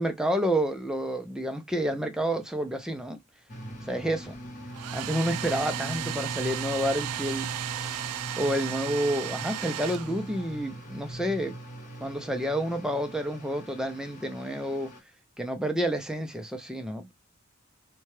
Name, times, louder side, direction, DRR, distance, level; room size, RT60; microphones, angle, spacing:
voice 1, 0.0-3.2 3.8-4.4 4.9-11.6 12.0-14.9 15.4-17.1, equal, 5° right, 0.4 m, -29 dB
sound 1, 3.5-15.0, right 1 dB, 35° left, 1.0 m, -41 dB
Domestic sounds home sounds, 4.7-10.6, right 12 dB, 90° right, 0.3 m, -35 dB
2.7 x 2.2 x 3.1 m
head